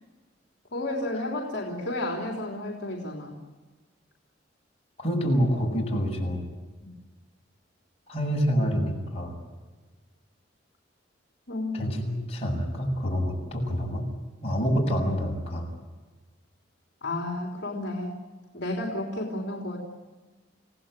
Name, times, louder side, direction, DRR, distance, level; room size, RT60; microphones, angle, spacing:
voice 1, 0.7-3.4 6.8-6.9 11.5-11.8 17.0-18.2 18.5-19.8, left 1 dB, 55° left, 0 dB, 3.6 m, -32 dB
voice 2, 5.0-6.4 8.1-9.3 11.7-14.0 14.4-15.7, equal, 30° left, -1 dB, 7.0 m, -27 dB
29.5 x 17.0 x 9.1 m, 1.3 s
head